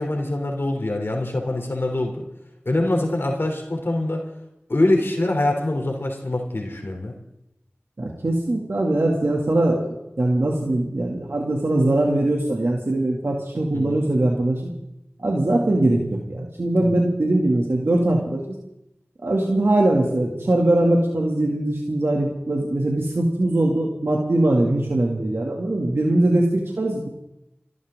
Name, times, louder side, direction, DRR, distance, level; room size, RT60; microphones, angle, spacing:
voice 1, 0.0-2.2 2.6-4.2 4.7-7.1 13.7-14.0 16.8-17.0, left 1 dB, 65° left, 2 dB, 3.4 m, -24 dB
voice 2, 8.0-14.7 15.2-16.0 16.3-18.4 19.2-27.1, right 1 dB, 75° right, -1 dB, 2.5 m, -21 dB
28.5 x 13.0 x 3.8 m, 0.85 s
wide cardioid pair, 45°, 4 cm